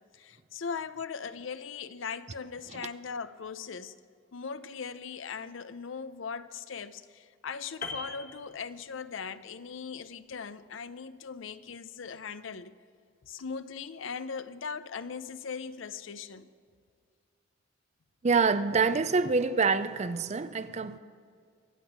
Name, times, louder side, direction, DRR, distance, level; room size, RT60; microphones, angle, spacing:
voice 1, 0.1-4.0 4.3-12.7 13.2-16.5, left 5 dB, 75° left, 0.6 m, -39 dB
Piano, 7.8-9.3 9.5-9.8, left 4 dB, 45° left, 1.3 m, -41 dB
voice 2, 18.2-21.0, right 4 dB, 35° right, 0.5 m, -26 dB
23.5 x 8.1 x 6.1 m
head